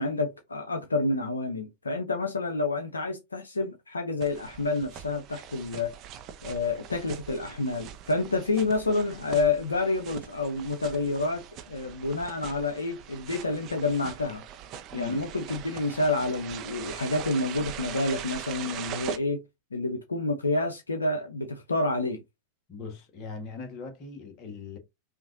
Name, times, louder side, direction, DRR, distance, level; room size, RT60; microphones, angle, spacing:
voice 1, 0.0-5.9 6.4-14.4 14.9-19.4 19.7-22.2, left 2 dB, 75° left, 0.7 m, -29 dB
sound 1, 4.2-19.2, right 9 dB, 35° right, 0.7 m, -42 dB
voice 2, 22.7-24.8, left 4 dB, 35° left, 1.5 m, -40 dB
5.6 x 2.6 x 2.6 m
figure-of-eight pair, 90°, 0 cm